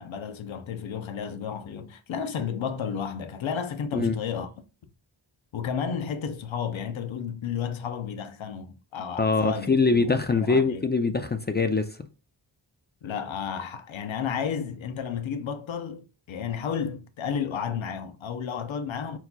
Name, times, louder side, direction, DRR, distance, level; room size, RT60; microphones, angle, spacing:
voice 1, 0.0-4.5 5.5-10.8 13.0-19.2, left 7 dB, 80° left, 0.7 m, -32 dB
voice 2, 9.2-12.0, left 4 dB, 25° left, 0.4 m, -23 dB
4.7 x 4.0 x 2.3 m
cardioid pair, 65°, 46 cm